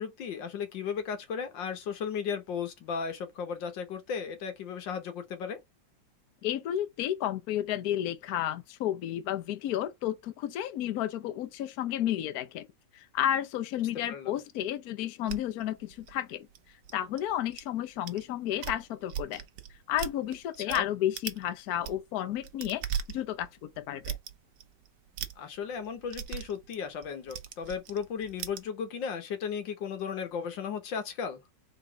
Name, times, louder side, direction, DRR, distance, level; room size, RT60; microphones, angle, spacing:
voice 1, 0.0-5.6 14.1-14.4 20.6-20.9 25.4-31.4, left 6 dB, 90° left, 1.8 m, -35 dB
voice 2, 6.4-12.7 12.9-16.5 16.9-19.4 19.9-22.8 23.1-24.2, left 11 dB, 65° left, 1.1 m, -32 dB
sound 1, 15.3-17.6 18.1-18.2 18.5-20.8 21.1-21.4 21.7-28.6, right 9 dB, 75° right, 1.4 m, -39 dB
4.0 x 3.8 x 3.3 m
omnidirectional pair, 1.9 m